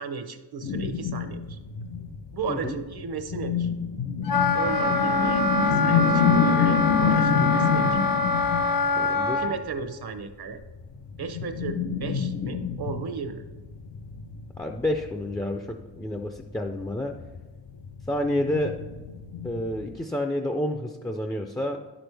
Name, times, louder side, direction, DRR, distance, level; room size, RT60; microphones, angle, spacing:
voice 1, 0.0-1.6 2.3-3.7 4.5-8.0 9.3-10.6 11.2-13.5, right 5 dB, 60° right, 9 dB, 0.8 m, -35 dB
sound 1, 0.6-9.1 9.4-9.7 10.6-16.0 16.3-16.4 16.7-16.8 17.1-19.9, left 6 dB, 90° left, 0.8 m, -27 dB
Wind instrument woodwind instrument, 4.3-9.5, left 3 dB, 55° left, 0.7 m, -24 dB
voice 2, 9.0-9.4 14.6-17.1 18.1-18.8 19.4-21.8, left 1 dB, 10° left, 3 dB, 0.3 m, -29 dB
11.0 x 6.1 x 3.3 m, 1.2 s
wide cardioid pair, 145°, 42 cm